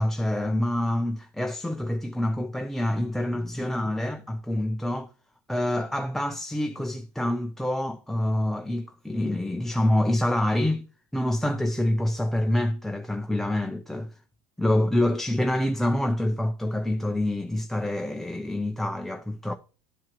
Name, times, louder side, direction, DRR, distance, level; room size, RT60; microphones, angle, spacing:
voice 1, 0.0-5.1 5.5-10.8 11.1-14.2 14.6-19.5, left 1 dB, ahead, 0.6 m, -26 dB
12.0 x 4.7 x 3.0 m
hypercardioid pair, 95°, 20 cm